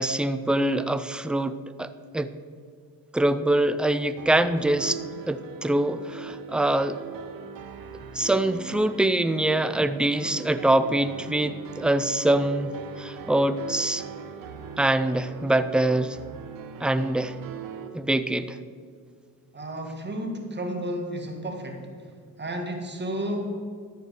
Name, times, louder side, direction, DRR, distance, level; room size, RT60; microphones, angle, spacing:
voice 1, 0.0-2.3 3.1-5.0 5.3-7.0 8.1-12.7 13.0-14.0 14.8-16.2 16.8-17.4 17.9-18.6, right 1 dB, 5° right, 12 dB, 0.4 m, -24 dB
sound 1, 4.2-17.9, right 7 dB, 70° right, 1.1 m, -41 dB
voice 2, 19.5-21.9 22.4-23.6, equal, 30° right, 2 dB, 1.8 m, -32 dB
13.5 x 4.5 x 6.7 m, 2.1 s
cardioid pair, 85°, 36 cm